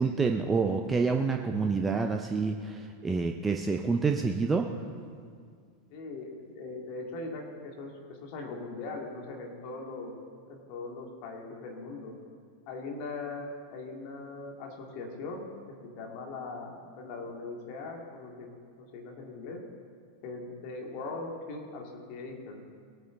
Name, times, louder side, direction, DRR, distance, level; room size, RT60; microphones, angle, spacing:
voice 1, 0.0-4.7, right 4 dB, 15° right, 4 dB, 0.7 m, -28 dB
voice 2, 5.9-10.1 10.5-12.2 12.7-15.5 15.8-18.5 18.8-19.6 20.2-22.6, left 3 dB, 45° left, 0 dB, 2.4 m, -40 dB
20.5 x 9.4 x 3.9 m, 2.1 s
figure-of-eight pair, 90°, 0 cm